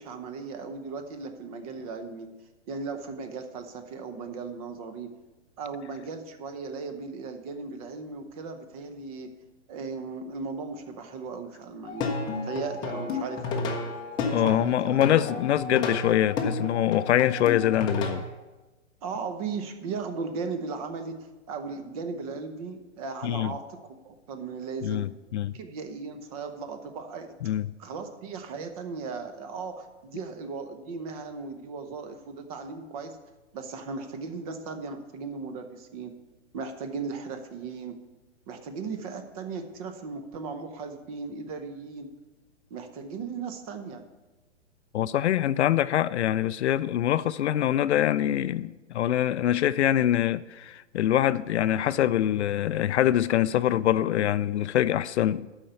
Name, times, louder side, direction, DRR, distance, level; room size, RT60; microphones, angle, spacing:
voice 1, 0.0-2.3 2.7-5.1 5.6-9.3 9.7-12.1 12.4-13.8 14.4-15.0 19.0-21.2 21.5-23.8 24.0-25.0 25.5-27.4 27.8-33.2 33.5-36.1 36.5-38.0 38.5-42.1 42.7-44.0, right 4 dB, 30° right, 0.9 m, -37 dB
Plucked string instrument, 11.8-18.3, left 3 dB, 10° left, 0.7 m, -32 dB
voice 2, 14.3-18.2 23.2-23.5 24.8-25.5 27.4-27.7 44.9-55.5, left 12 dB, 70° left, 0.5 m, -24 dB
12.0 x 4.4 x 6.8 m
hypercardioid pair, 155°, 36 cm